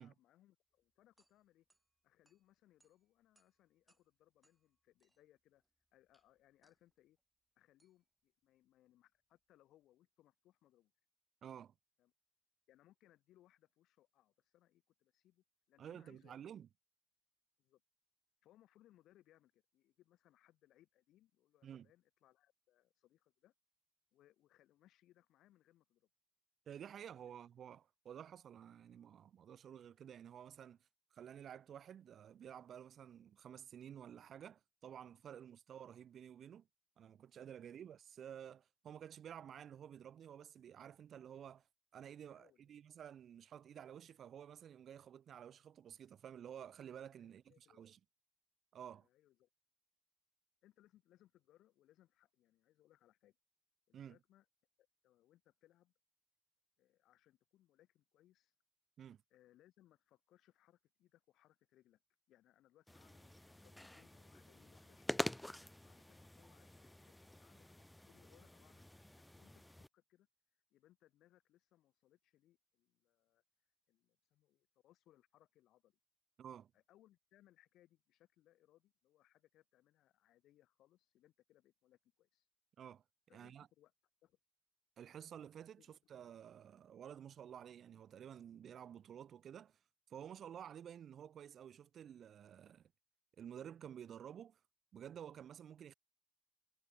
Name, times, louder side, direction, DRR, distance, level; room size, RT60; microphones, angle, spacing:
voice 1, 0.0-1.7 2.0-5.6 5.9-7.2 7.6-10.9 12.0-12.1 12.7-16.4 17.6-17.8 18.4-23.5 24.1-26.1 27.2-27.3 42.3-42.7 47.2-47.9 48.9-49.5 50.6-53.4 53.9-54.5 54.8-55.9 56.8-58.5 59.3-62.0 62.3-65.3 65.7-70.3 70.7-73.4 73.9-76.0 76.7-82.5 83.3-83.9 84.2-84.4 85.8-85.9 90.6-90.7, left 14 dB, 85° left, 2.4 m, -71 dB
sound 1, 0.7-9.8, right 2 dB, 15° right, 3.5 m, -82 dB
voice 2, 11.4-11.7 15.8-16.7 21.6-21.9 26.7-30.8 31.1-36.7 37.0-41.7 41.9-48.0 48.7-49.1 53.9-54.2 59.0-59.2 76.4-76.7 82.8-83.0 83.3-83.7 85.0-89.8 90.1-92.9 93.4-94.6 94.9-95.9, right 9 dB, 65° right, 0.8 m, -52 dB
sound 2, 62.9-69.9, left 1 dB, 10° left, 0.4 m, -47 dB
cardioid pair, 90°, 0 cm